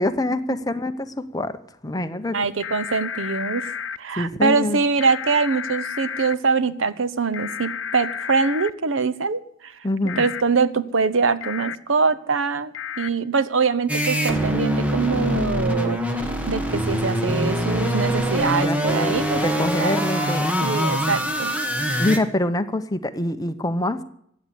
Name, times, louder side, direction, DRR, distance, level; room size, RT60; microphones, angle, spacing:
voice 1, 0.0-1.6 1.8-2.4 4.2-4.8 9.8-10.2 18.6-20.5 22.0-24.0, left 1 dB, 20° left, 10 dB, 0.8 m, -25 dB
voice 2, 2.3-3.6 4.0-9.8 10.2-20.0 20.6-21.5, right 4 dB, 75° right, 15 dB, 0.9 m, -23 dB
sound 1, 2.6-4.0 5.0-6.3 7.3-8.7 10.1-10.4 11.4-11.8 12.7-13.1, left 7 dB, 85° left, 0.6 m, -31 dB
sound 2, 13.9-22.2, equal, 5° right, 1.4 m, -23 dB
15.0 x 8.5 x 10.0 m, 0.70 s
head